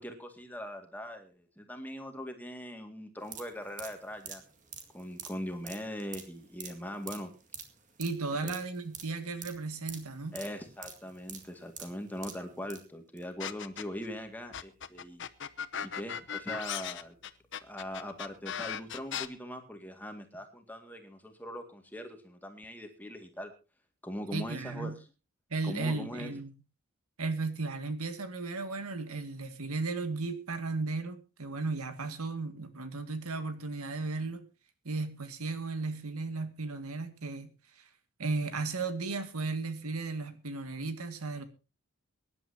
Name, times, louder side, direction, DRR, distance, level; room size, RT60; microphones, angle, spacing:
voice 1, 0.0-4.4 4.9-7.3 8.4-8.5 10.3-15.2 15.8-17.2 17.6-23.5 24.0-25.0 25.6-26.4, equal, 10° left, 2.0 m, -41 dB
sound 1, 3.2-12.8 13.2-13.3, right 7 dB, 35° right, 2.0 m, -47 dB
voice 2, 8.0-10.4 24.3-24.9 25.5-26.5 27.2-34.5 34.8-37.5 37.8-37.9 38.2-41.4, right 3 dB, 85° right, 2.0 m, -35 dB
sound 2, 13.4-14.1 14.5-19.3, left 8 dB, 55° left, 0.8 m, -37 dB
23.5 x 11.0 x 2.8 m
head